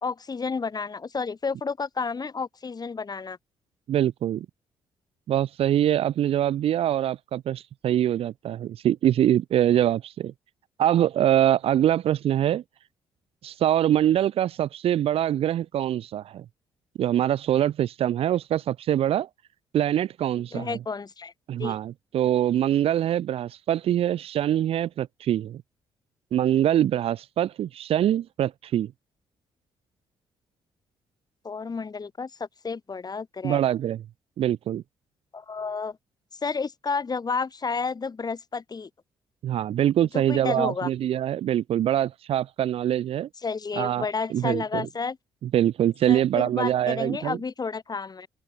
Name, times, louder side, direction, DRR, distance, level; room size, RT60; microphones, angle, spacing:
voice 1, 0.0-3.4 20.5-21.3 21.6-21.8 31.4-32.3 32.6-33.6 35.3-36.0 36.4-38.9 40.1-40.9 43.4-45.2 46.1-48.3, left 5 dB, 40° left, 3.4 m, -31 dB
voice 2, 3.9-4.5 5.3-10.3 10.8-12.6 13.4-16.4 17.0-19.3 19.7-20.8 21.5-25.6 26.3-28.9 33.4-34.0 34.4-34.8 39.4-43.3 43.8-44.9 45.4-47.4, right 11 dB, 65° right, 0.8 m, -24 dB
supercardioid pair, 55°, 11 cm